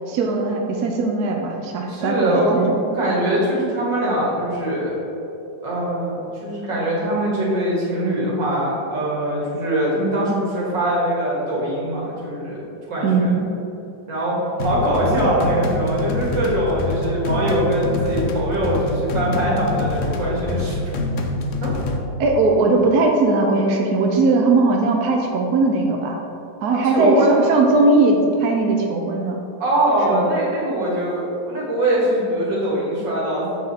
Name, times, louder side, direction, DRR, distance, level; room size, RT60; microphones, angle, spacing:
voice 1, 0.1-2.8 13.0-13.5 22.2-26.2 26.6-29.4 30.1-30.4, right 3 dB, 65° right, 1 dB, 1.1 m, -19 dB
voice 2, 1.9-5.0 5.6-12.6 12.9-13.3 14.1-20.8 21.6-21.7 26.9-27.3 29.6-33.5, right 1 dB, 90° right, -6 dB, 2.6 m, -22 dB
sound 1, 14.6-22.0, left 2 dB, 75° left, 0.6 m, -25 dB
7.6 x 4.9 x 4.2 m, 2.7 s
omnidirectional pair, 1.9 m